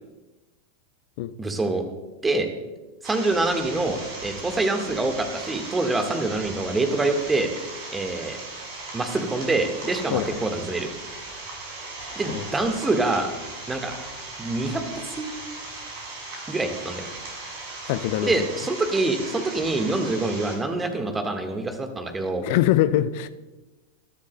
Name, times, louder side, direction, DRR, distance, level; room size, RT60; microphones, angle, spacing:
voice 1, 1.4-1.8 2.2-2.5 3.0-7.5 7.9-8.4 8.9-10.9 12.1-13.3 13.7-13.9 14.4-14.8 15.2-15.3 16.5-17.1 18.2-22.4, right 2 dB, 15° right, 5 dB, 1.5 m, -25 dB
sound 1, 3.0-20.6, right 2 dB, 50° right, 4.6 m, -38 dB
voice 2, 17.9-18.5 22.4-23.3, left 13 dB, 50° left, 14 dB, 0.5 m, -23 dB
21.0 x 11.5 x 2.2 m, 1.2 s
figure-of-eight pair, 90°, 0 cm